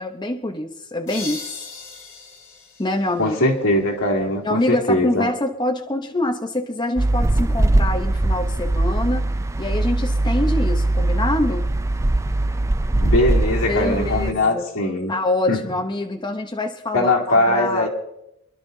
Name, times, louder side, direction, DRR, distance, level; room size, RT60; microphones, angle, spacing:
voice 1, 0.0-1.5 2.8-3.4 4.4-9.3 9.6-11.7 13.7-14.7 15.1-17.9, left 1 dB, 20° left, 3 dB, 0.9 m, -25 dB
sound 1, 1.1-3.8, left 3 dB, 60° left, 5.6 m, -38 dB
voice 2, 3.2-5.3 13.0-15.1 15.5-15.6 16.9-17.9, left 1 dB, 75° left, -2 dB, 2.9 m, -20 dB
sound 2, 7.0-14.3, right 2 dB, 15° right, 0.4 m, -21 dB
27.0 x 12.0 x 2.7 m, 0.84 s
head